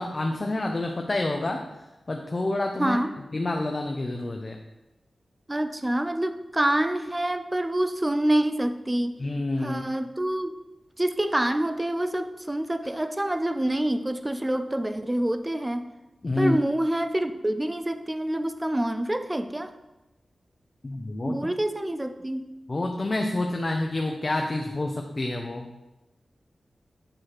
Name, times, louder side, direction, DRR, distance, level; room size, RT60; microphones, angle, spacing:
voice 1, 0.0-1.7 2.1-3.0 3.3-4.6 9.2-9.8 16.2-16.6 20.8-21.4 22.7-25.7, left 2 dB, 35° left, 3 dB, 0.5 m, -28 dB
voice 2, 2.8-3.1 5.5-9.2 9.6-10.6 11.0-15.9 16.4-19.7 21.3-22.5, right 1 dB, 15° right, 9 dB, 0.4 m, -26 dB
8.7 x 3.2 x 5.8 m, 1.0 s
wide cardioid pair, 120°, 0 cm